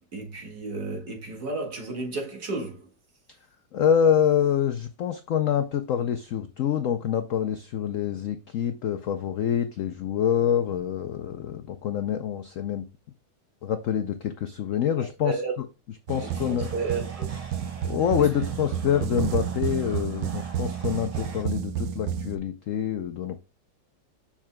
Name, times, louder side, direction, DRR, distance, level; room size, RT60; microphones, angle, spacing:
voice 1, 0.0-2.9 15.0-15.5 16.2-17.3 17.8-18.3, right 3 dB, 55° right, 2.5 m, -33 dB
voice 2, 3.7-12.8 13.6-15.3 16.1-16.7 17.8-23.4, left 9 dB, 75° left, 0.7 m, -26 dB
sound 1, 16.1-21.4, right 2 dB, 20° right, 1.1 m, -45 dB
sound 2, 16.1-22.4, right 9 dB, 85° right, 1.3 m, -31 dB
7.3 x 5.8 x 2.2 m
omnidirectional pair, 2.0 m